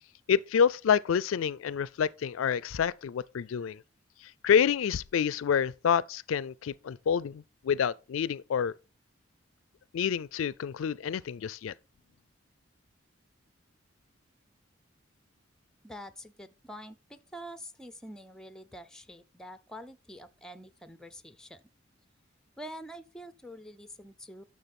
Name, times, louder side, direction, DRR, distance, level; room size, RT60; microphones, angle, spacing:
voice 1, 0.3-3.8 4.2-8.7 9.9-11.7, left 7 dB, 80° left, 0.4 m, -28 dB
voice 2, 15.8-21.6 22.6-24.4, equal, 5° left, 0.6 m, -46 dB
10.0 x 6.5 x 4.2 m
head